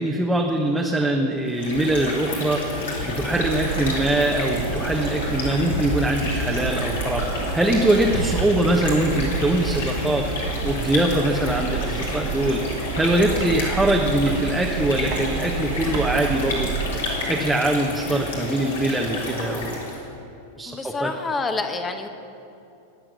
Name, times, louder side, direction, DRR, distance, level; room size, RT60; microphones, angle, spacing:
voice 1, 0.0-2.7 3.0-10.3 10.6-12.6 12.9-16.7 17.3-19.8 20.6-21.1, right 1 dB, 5° right, -1 dB, 1.1 m, -23 dB
sound 1, 1.4-20.1, left 2 dB, 65° left, 3.3 m, -30 dB
sound 2, 3.3-16.9, right 6 dB, 45° right, 1.6 m, -30 dB
voice 2, 20.7-22.1, left 3 dB, 20° left, 7 dB, 1.2 m, -27 dB
21.0 x 7.6 x 6.6 m, 2.7 s
figure-of-eight pair, 90°, 0 cm